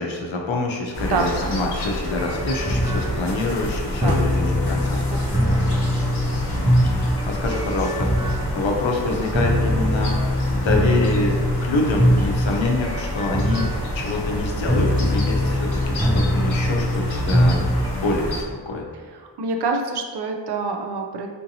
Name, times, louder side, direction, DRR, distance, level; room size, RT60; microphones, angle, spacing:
voice 1, 0.0-5.0 6.5-8.2 8.5-17.6 17.9-18.8, left 2 dB, 85° left, 0 dB, 0.7 m, -26 dB
sound 1, 0.9-18.4, left 1 dB, 60° left, 0.9 m, -29 dB
sound 2, 2.1-18.0, equal, 10° right, 0.4 m, -22 dB
voice 2, 4.9-5.6 19.1-21.3, right 4 dB, 60° right, 3 dB, 0.5 m, -27 dB
4.3 x 2.7 x 2.6 m, 1.5 s
wide cardioid pair, 60°, 45 cm